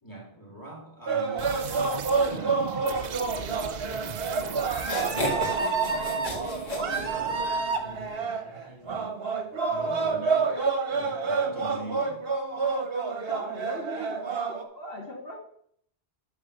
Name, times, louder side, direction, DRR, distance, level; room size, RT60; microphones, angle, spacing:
voice 1, 0.0-1.6 2.0-3.7 5.0-10.6 10.9-12.2, right 1 dB, 20° left, -3 dB, 2.8 m, -43 dB
sound 1, 1.1-14.6, right 4 dB, 70° right, 1.3 m, -28 dB
sound 2, 1.4-7.6, right 6 dB, 50° right, 0.6 m, -38 dB
sound 3, 4.8-7.6, left 1 dB, 40° left, 2.1 m, -33 dB
voice 2, 13.3-15.5, equal, 65° left, -2 dB, 1.9 m, -39 dB
11.5 x 4.0 x 6.5 m, 0.66 s
omnidirectional pair, 1.1 m